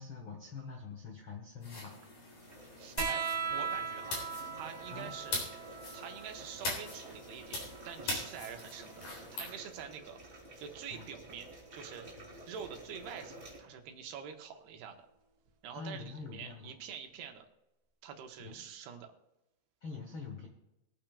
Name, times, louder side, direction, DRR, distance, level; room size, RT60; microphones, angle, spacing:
voice 1, 0.0-1.9 4.9-5.1 10.9-11.1 12.2-12.3 15.7-16.8 18.4-18.6 19.8-20.5, left 5 dB, 85° left, 1 dB, 1.1 m, -45 dB
sound 1, 1.6-9.5, left 2 dB, 50° left, 4.8 m, -42 dB
sound 2, 2.4-13.6, right 1 dB, 15° right, 3.3 m, -52 dB
voice 2, 2.8-3.2 3.5-4.2 4.5-5.4 5.9-9.0 9.3-10.2 10.6-12.1 12.5-15.1 15.6-17.5 18.0-19.1, right 7 dB, 85° right, 5 dB, 3.3 m, -46 dB
sound 3, 3.0-10.0 11.4-12.2 13.5-13.6, right 5 dB, 60° right, 2.7 m, -41 dB
23.5 x 8.9 x 2.4 m, 0.95 s
omnidirectional pair, 4.5 m